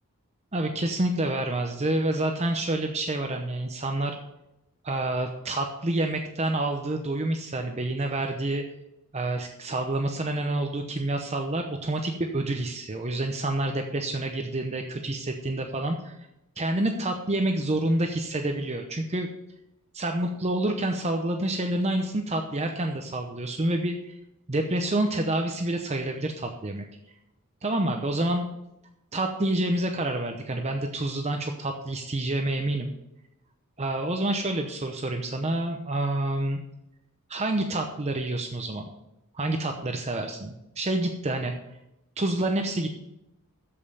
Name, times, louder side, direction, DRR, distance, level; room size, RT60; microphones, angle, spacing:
voice 1, 0.5-4.2 4.8-8.6 9.1-16.2 16.6-19.3 19.9-24.1 24.5-26.8 27.6-28.4 29.1-32.9 33.8-36.6 37.3-38.9 39.3-41.5 42.2-42.9, right 1 dB, 30° right, 4 dB, 0.8 m, -28 dB
13.5 x 5.5 x 5.5 m, 0.87 s
head